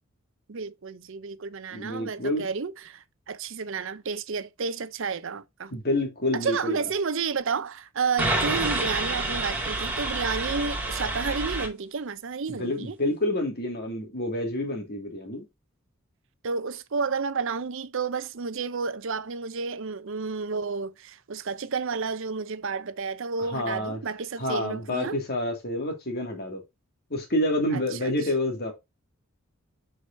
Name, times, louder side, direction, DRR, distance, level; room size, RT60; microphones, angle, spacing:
voice 1, 0.5-5.7 6.3-13.0 16.4-25.2 27.7-28.1, right 5 dB, 65° right, 0.6 m, -31 dB
voice 2, 1.7-2.5 5.7-6.9 12.5-15.5 23.5-24.0 24.4-26.6 27.1-28.7, left 1 dB, 50° left, 2.3 m, -28 dB
sound 1, 8.2-11.7, right 2 dB, 10° right, 2.2 m, -28 dB
7.5 x 4.9 x 2.7 m
head